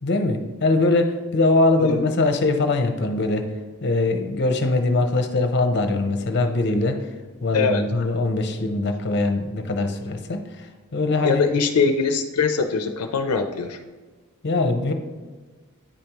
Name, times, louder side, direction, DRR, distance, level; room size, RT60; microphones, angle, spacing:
voice 1, 0.0-3.4 3.8-7.0 7.4-10.4 10.9-11.5 14.4-14.9, left 2 dB, 50° left, 6 dB, 0.7 m, -22 dB
voice 2, 7.5-7.8 11.2-13.8, left 5 dB, 90° left, 6 dB, 0.5 m, -22 dB
8.7 x 5.1 x 3.0 m, 1.4 s
head